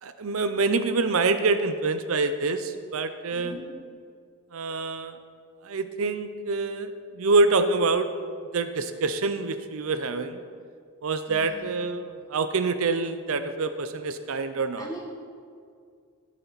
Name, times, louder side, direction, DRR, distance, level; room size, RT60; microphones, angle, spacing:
voice 1, 0.0-3.6 4.5-5.2 5.6-8.1 8.5-10.4 11.0-14.9, right 3 dB, 70° right, 10 dB, 0.6 m, -26 dB
voice 2, 3.3-3.6 11.3-11.7 14.8-15.0, equal, 20° left, -7 dB, 3.4 m, -40 dB
13.0 x 11.0 x 4.1 m, 2.2 s
head